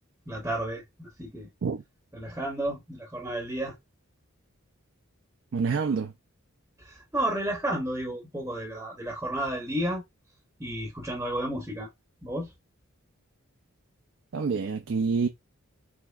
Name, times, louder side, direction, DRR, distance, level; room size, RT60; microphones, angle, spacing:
voice 1, 0.3-1.5 2.1-3.7 6.8-10.0 10.6-11.9 12.2-12.5, right 1 dB, 10° right, 0.7 m, -32 dB
voice 2, 5.5-6.1 14.3-15.3, right 5 dB, 60° right, 0.4 m, -27 dB
4.3 x 2.8 x 2.3 m
head